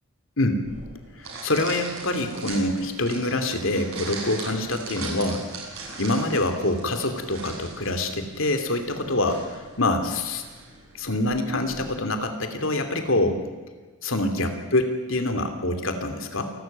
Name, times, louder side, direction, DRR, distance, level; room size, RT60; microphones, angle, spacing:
sound 1, 0.6-12.0, right 4 dB, 75° right, 7.8 m, -40 dB
voice 1, 1.4-5.4 6.0-9.4 9.8-10.4 11.0-13.4 14.0-16.5, left 2 dB, 65° left, 7 dB, 2.9 m, -25 dB
27.5 x 13.0 x 9.3 m, 1.3 s
head